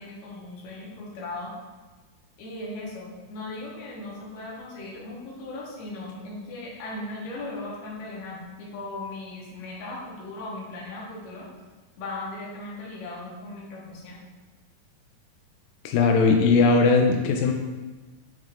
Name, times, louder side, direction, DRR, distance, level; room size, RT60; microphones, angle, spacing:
voice 1, 0.0-1.5 2.4-11.5 12.0-14.2, left 2 dB, 70° left, -4 dB, 2.6 m, -37 dB
voice 2, 15.9-17.5, left 4 dB, 90° left, 3 dB, 2.2 m, -19 dB
7.1 x 5.3 x 2.5 m, 1.3 s
omnidirectional pair, 3.8 m